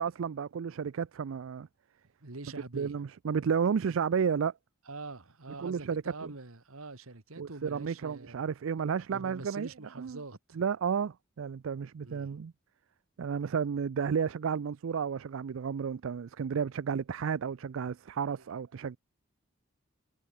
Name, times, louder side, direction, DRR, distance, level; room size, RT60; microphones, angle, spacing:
voice 1, 0.0-1.7 2.7-4.5 5.6-6.3 7.4-9.7 10.0-10.2 10.6-12.5 13.2-19.0, right 6 dB, 75° right, 0.4 m, -32 dB
voice 2, 2.2-3.0 4.9-8.4 9.1-10.6 12.0-12.5 18.4-18.5, right 3 dB, 90° right, 1.8 m, -45 dB
head